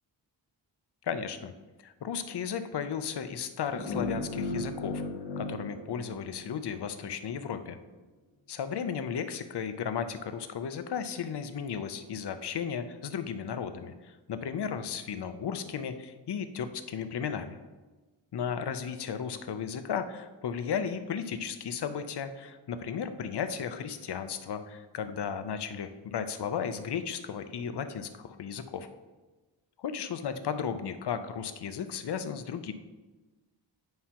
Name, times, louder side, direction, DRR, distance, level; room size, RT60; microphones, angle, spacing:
voice 1, 1.0-1.5 1.8-5.0 5.4-7.8 8.5-17.6 18.3-28.9 29.8-32.7, left 7 dB, 55° left, 10 dB, 0.6 m, -35 dB
sound 1, 3.7-6.8, left 2 dB, 90° left, 1.2 m, -36 dB
9.4 x 5.5 x 2.9 m, 1.2 s
wide cardioid pair, 180°, 48 cm